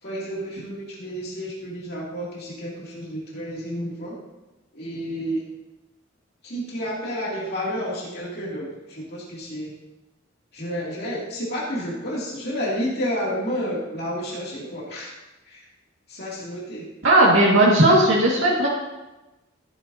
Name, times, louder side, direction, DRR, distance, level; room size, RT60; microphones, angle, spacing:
voice 1, 0.0-4.2 4.7-5.4 6.4-9.7 10.5-15.2 15.5-15.7 16.1-16.9, equal, 50° left, -5 dB, 2.7 m, -30 dB
voice 2, 17.0-18.7, right 1 dB, 80° right, -5 dB, 2.0 m, -16 dB
14.5 x 9.7 x 2.8 m, 1.0 s
head